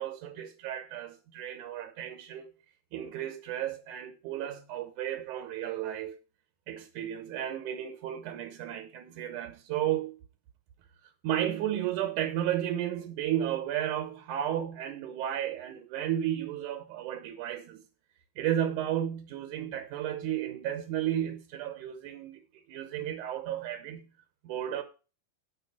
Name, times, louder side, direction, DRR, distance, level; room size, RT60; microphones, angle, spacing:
voice 1, 0.0-2.5 2.9-6.2 6.7-10.2 11.2-17.8 18.4-22.4 22.7-24.0 24.4-24.8, right 11 dB, 70° right, 2.1 m, -33 dB
12.0 x 5.0 x 7.2 m
omnidirectional pair, 4.3 m